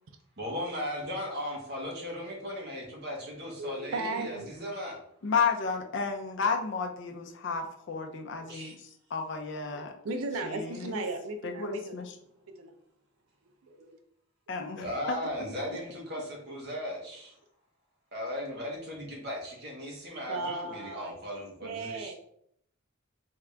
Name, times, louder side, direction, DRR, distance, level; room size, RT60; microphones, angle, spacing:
voice 1, 0.4-5.0 8.5-8.7 14.8-17.3 18.1-22.1, left 1 dB, 50° right, -2 dB, 1.1 m, -37 dB
voice 2, 3.6-4.5 8.4-8.5 10.0-12.0 12.6-12.7 13.6-14.0 20.3-21.2 21.6-22.1, right 2 dB, 85° right, 6 dB, 0.4 m, -36 dB
voice 3, 5.2-9.9 10.4-11.0 11.4-12.2 14.5-15.8, left 5 dB, 60° left, 3 dB, 0.5 m, -33 dB
3.6 x 2.4 x 3.3 m, 0.70 s
head